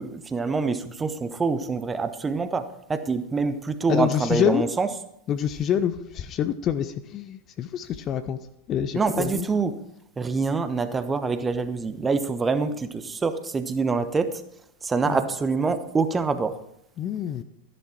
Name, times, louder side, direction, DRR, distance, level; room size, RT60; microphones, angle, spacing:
voice 1, 0.0-4.9 8.9-9.8 10.2-14.3 14.8-16.6, right 4 dB, 15° right, 11 dB, 1.0 m, -25 dB
voice 2, 3.9-4.6 5.3-8.4 8.7-9.5 15.1-15.2 17.0-17.4, left 9 dB, 30° left, 12 dB, 0.7 m, -26 dB
13.5 x 11.0 x 4.7 m, 0.77 s
figure-of-eight pair, 90°, 0 cm